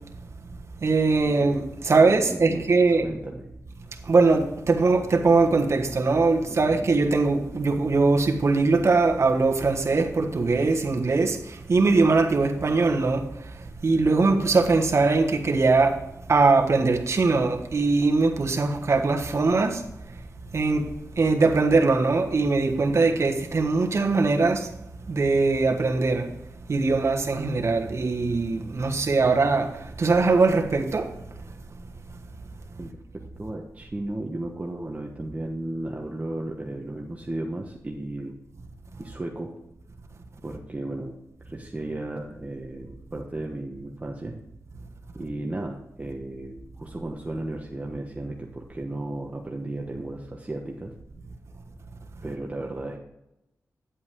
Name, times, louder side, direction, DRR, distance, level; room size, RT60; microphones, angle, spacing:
voice 1, 0.8-3.1 4.1-13.2 13.8-16.0 16.3-19.8 20.5-20.9 21.2-24.7 25.1-26.3 26.7-31.1, right 3 dB, 50° right, 1.4 m, -21 dB
voice 2, 2.0-3.5 6.5-6.9 32.8-32.9 33.4-38.3 39.0-39.5 40.4-41.1 41.4-44.4 45.1-50.9 52.2-53.0, right 2 dB, 25° right, 1.2 m, -34 dB
10.0 x 8.3 x 3.7 m
wide cardioid pair, 85°, 6 cm